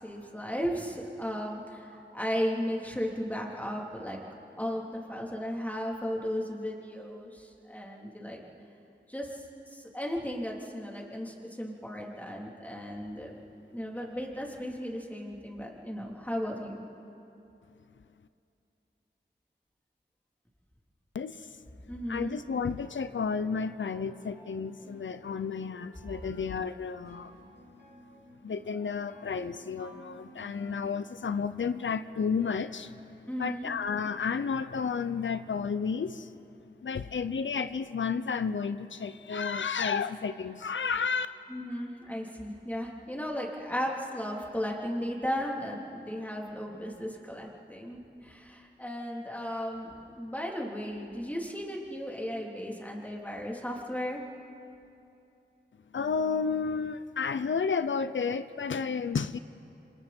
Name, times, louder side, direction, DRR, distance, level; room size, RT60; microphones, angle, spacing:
voice 1, 0.0-4.2 4.6-8.4 9.1-13.4 13.7-16.9 21.9-22.4 33.3-33.7 41.5-54.2, equal, 10° left, -2 dB, 3.3 m, -35 dB
voice 2, 21.1-21.6 22.1-27.3 28.4-36.4 36.8-41.3 55.9-59.4, left 5 dB, 90° left, 12 dB, 0.5 m, -32 dB
sound 1, 22.5-31.7, right 1 dB, 60° right, 3.7 m, -54 dB
28.0 x 26.5 x 4.4 m, 2.7 s
wide cardioid pair, 60°, 19 cm